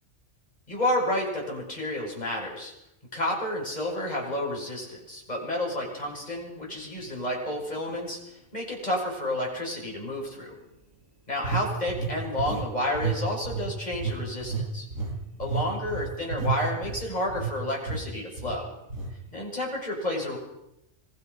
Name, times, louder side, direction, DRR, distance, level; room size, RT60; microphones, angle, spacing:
voice 1, 0.7-2.7 3.1-8.2 8.5-10.5 11.3-14.9 15.4-18.7 19.3-20.4, left 1 dB, 30° left, -1 dB, 6.9 m, -30 dB
sound 1, 7.0-7.1 7.7-7.9 11.4-12.7 12.9-13.2 13.4-17.5 17.9-18.0 18.4-18.6 18.9-19.1, right 5 dB, 90° right, 5.7 m, -31 dB
25.5 x 22.0 x 5.6 m, 0.83 s
omnidirectional pair, 1.3 m